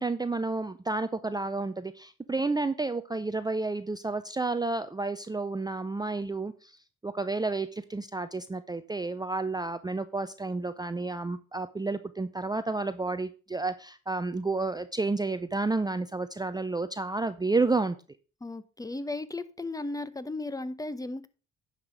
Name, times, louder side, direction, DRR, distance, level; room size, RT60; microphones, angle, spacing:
voice 1, 0.0-6.8 7.0-18.0, right 3 dB, 15° right, 11 dB, 0.5 m, -31 dB
voice 2, 18.4-21.3, left 2 dB, 10° left, 15 dB, 0.8 m, -35 dB
10.0 x 5.8 x 5.0 m, 0.35 s
cardioid pair, 90°, 30 cm